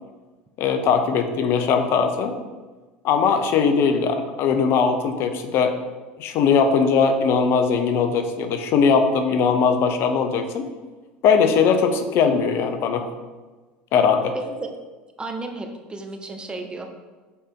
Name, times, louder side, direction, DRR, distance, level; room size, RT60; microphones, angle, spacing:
voice 1, 0.6-2.3 3.0-5.8 6.2-10.7 11.2-13.1 13.9-14.3, left 6 dB, 55° left, 8 dB, 0.7 m, -20 dB
voice 2, 14.3-14.7 15.2-16.9, right 2 dB, 20° right, 5 dB, 1.0 m, -33 dB
6.9 x 4.9 x 3.8 m, 1.3 s
hypercardioid pair, 80°, 5 cm